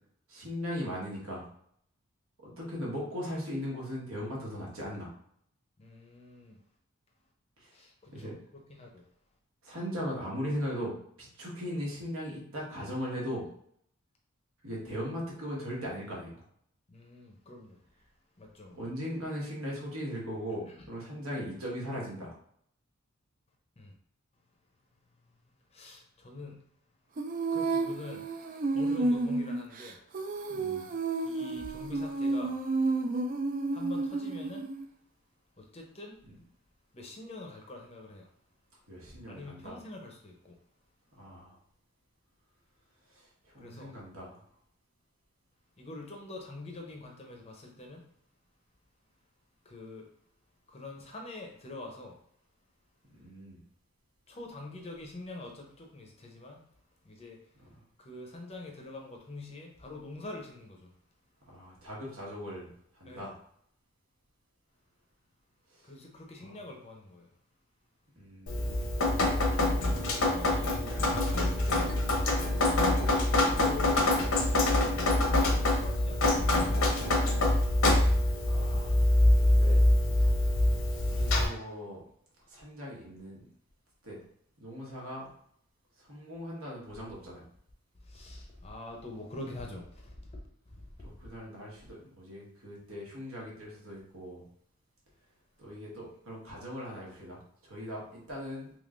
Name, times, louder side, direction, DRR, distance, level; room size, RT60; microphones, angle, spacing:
voice 1, 0.3-1.4 2.4-5.1 7.6-7.7 8.1-8.3 9.6-13.5 14.6-16.4 18.7-22.4 30.5-30.9 36.2-36.4 38.9-39.8 41.1-41.6 43.1-44.4 53.1-53.6 57.5-57.8 61.5-63.4 65.7-65.9 66.4-66.6 68.1-68.9 69.8-71.6 78.4-79.1 79.4-79.8 81.0-82.0 82.4-83.4 84.0-84.2 84.6-85.3 86.0-87.5 91.0-94.5 95.6-98.7, equal, 80° right, -4 dB, 1.4 m, -39 dB
voice 2, 5.8-6.6 7.7-8.3 8.8-9.0 16.9-17.8 18.4-18.8 23.8-23.9 25.7-26.6 27.5-28.2 28.7-30.0 31.3-32.6 33.7-34.6 35.6-36.2 36.9-38.3 39.3-40.5 43.6-43.9 45.8-48.0 49.7-50.1 50.7-52.1 54.3-56.6 57.0-57.4 58.0-60.9 63.1-63.3 65.9-67.3 70.2-70.7 71.6-71.7 72.1-74.9 75.6-76.9 88.1-90.4 90.7-90.9, left 2 dB, 30° left, 1 dB, 0.6 m, -45 dB
Female singing, 27.2-34.8, right 3 dB, 40° right, 0.3 m, -31 dB
Drip, 68.5-81.5, left 1 dB, 80° left, 0.8 m, -25 dB
3.6 x 3.1 x 2.5 m, 0.66 s
head